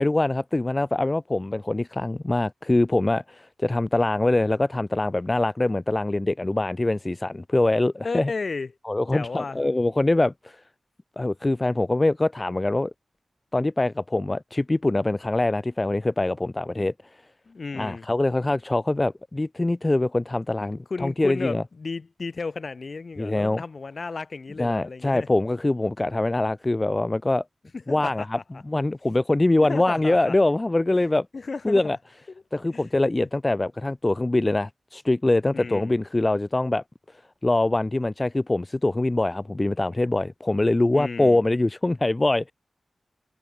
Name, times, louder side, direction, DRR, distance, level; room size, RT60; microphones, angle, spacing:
voice 1, 0.0-8.3 8.9-10.6 11.2-12.9 13.5-16.9 17.8-21.6 23.2-23.6 24.6-27.4 27.9-28.4 28.7-31.3 31.6-32.0 32.5-36.8 37.4-42.5, left 2 dB, 30° left, 0.6 m, -23 dB
voice 2, 8.0-8.7 9.1-9.6 17.5-18.1 20.6-25.3 27.7-28.4 29.6-30.3 31.3-31.8 32.3-32.4 32.7-32.9 35.5-36.0 40.9-41.4, left 4 dB, 60° left, 6.9 m, -33 dB
wide cardioid pair, 65°, 0 cm